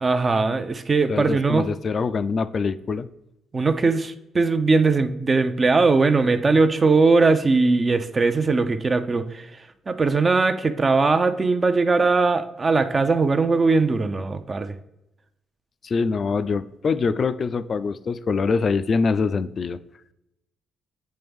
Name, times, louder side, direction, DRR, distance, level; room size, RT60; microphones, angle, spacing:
voice 1, 0.0-1.7 3.5-9.5 9.9-14.7, right 3 dB, 30° right, 0.5 m, -20 dB
voice 2, 1.1-3.1 15.8-19.8, left 4 dB, 45° left, 0.3 m, -24 dB
8.5 x 3.4 x 3.5 m
cardioid pair, 90°, 0 cm